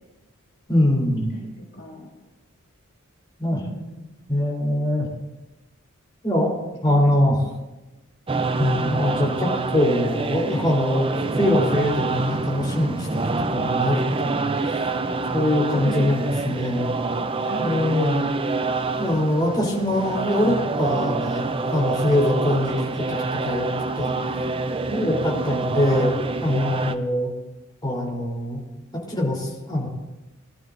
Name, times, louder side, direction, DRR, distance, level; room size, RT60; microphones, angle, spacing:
voice 1, 0.7-1.4 3.4-3.6 4.3-5.1 6.2-6.5 6.8-7.4 8.6-11.1 11.3-14.9 15.3-16.9 17.6-18.3 19.0-23.7 24.0-24.4 24.9-26.1 26.4-27.3 27.8-28.6 29.1-29.9, left 1 dB, 20° left, -3 dB, 3.6 m, -23 dB
voice 2, 1.3-2.1 3.5-4.1 6.9-7.1 15.7-16.2 17.4-17.8 19.8-19.9 20.9-21.1 24.9-25.7, equal, 55° left, -3 dB, 2.2 m, -35 dB
sound 1, 8.3-27.0, right 3 dB, 25° right, 0.5 m, -26 dB
21.5 x 12.0 x 2.6 m, 1.1 s
head